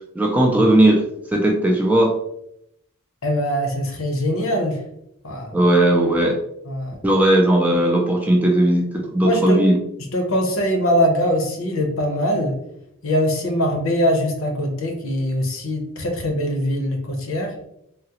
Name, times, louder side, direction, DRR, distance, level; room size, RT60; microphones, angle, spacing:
voice 1, 0.2-1.0 1.3-2.1 5.5-6.4 7.0-9.8, right 1 dB, 5° right, -1 dB, 0.3 m, -17 dB
voice 2, 3.2-4.8 5.2-5.5 6.7-6.9 9.2-9.6 10.1-12.5 13.0-17.5, equal, 65° left, 2 dB, 0.7 m, -22 dB
3.6 x 2.0 x 2.8 m, 0.78 s
head